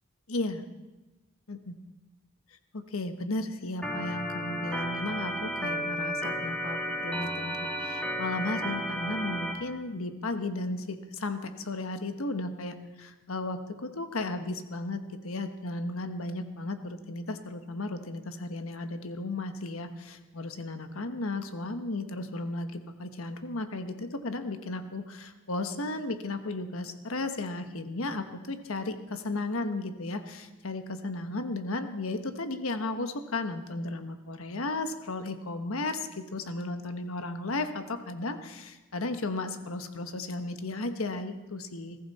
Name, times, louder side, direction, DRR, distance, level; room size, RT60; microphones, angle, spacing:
voice 1, 0.3-0.6 1.5-1.7 2.7-42.0, left 2 dB, 75° left, 8 dB, 1.2 m, -34 dB
Organ, 3.8-9.5, equal, 5° left, 2.7 m, -33 dB
20.5 x 14.5 x 4.2 m, 1.1 s
head